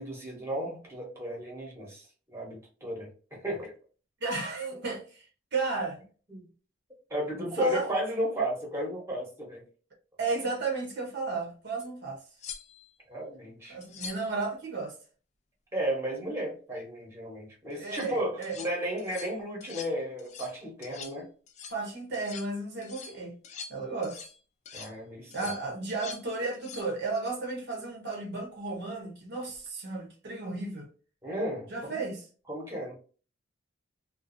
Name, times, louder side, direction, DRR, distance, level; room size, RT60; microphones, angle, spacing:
voice 1, 0.0-3.7 6.3-6.5 7.1-9.6 13.1-13.8 15.7-21.3 24.7-25.3 31.2-32.0 32.5-32.9, equal, 15° right, 0.9 m, -34 dB
voice 2, 4.2-6.0 7.4-7.9 10.2-12.2 13.7-15.0 17.7-18.6 21.7-23.4 23.7-24.2 25.3-30.9 31.7-32.2, right 3 dB, 60° right, 0.8 m, -33 dB
sound 1, 11.8-11.9 12.4-13.0 13.8-14.3 17.7-18.1 18.4-18.7 19.0-19.3 19.6-19.9 20.2-20.6 20.8-21.2 21.5-21.8 22.1-22.5 22.8-24.4 24.7-24.9 25.3-26.3 26.5-26.9 29.5-29.7, left 6 dB, 35° left, 0.4 m, -44 dB
2.6 x 2.3 x 2.5 m
head